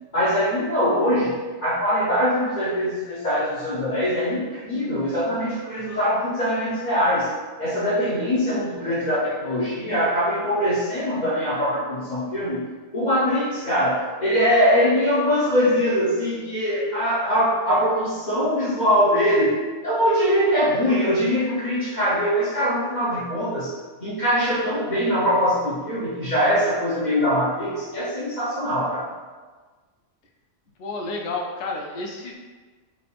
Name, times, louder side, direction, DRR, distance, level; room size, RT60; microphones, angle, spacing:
voice 1, 0.1-7.3 7.6-12.6 12.9-23.7 24.0-29.1, equal, 45° left, -8 dB, 0.7 m, -22 dB
voice 2, 30.8-32.4, left 3 dB, 75° left, 0 dB, 0.9 m, -30 dB
3.6 x 3.5 x 2.4 m, 1.4 s
omnidirectional pair, 1.3 m